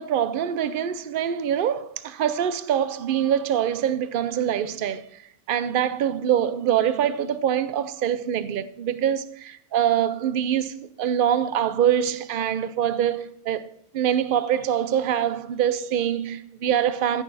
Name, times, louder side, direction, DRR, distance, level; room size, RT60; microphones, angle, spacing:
voice 1, 0.0-5.2 5.5-13.7 13.9-17.2, right 9 dB, 65° right, 0.5 m, -24 dB
14.5 x 6.6 x 4.1 m
omnidirectional pair, 1.6 m